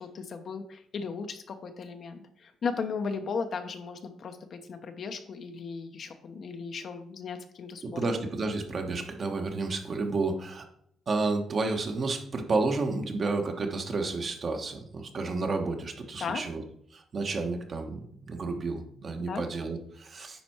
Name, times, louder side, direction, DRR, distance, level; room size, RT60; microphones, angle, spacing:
voice 1, 0.0-8.0 16.2-16.4 19.3-19.4, left 5 dB, 55° left, 7 dB, 1.0 m, -36 dB
voice 2, 7.8-10.7 11.1-16.6 16.9-20.4, right 3 dB, 45° right, 4 dB, 1.4 m, -31 dB
10.0 x 4.4 x 4.5 m, 0.70 s
cardioid pair, 90°, 0 cm